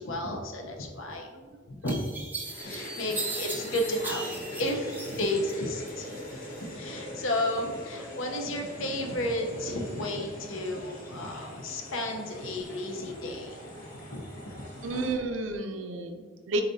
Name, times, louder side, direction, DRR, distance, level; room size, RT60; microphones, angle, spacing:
voice 1, 0.0-1.3 1.7-2.0 2.6-6.2 6.6-13.6 14.1-14.4, left 1 dB, 80° left, 2 dB, 0.7 m, -32 dB
sound 1, 1.1-1.2 1.9-5.5 5.9-6.6, right 3 dB, 10° right, 0.5 m, -37 dB
voice 2, 1.1-1.6 14.8-16.6, right 2 dB, 75° right, 6 dB, 0.5 m, -32 dB
sound 2, 2.4-15.1, equal, 50° left, 1.5 m, -42 dB
7.1 x 2.7 x 2.7 m, 1.4 s
head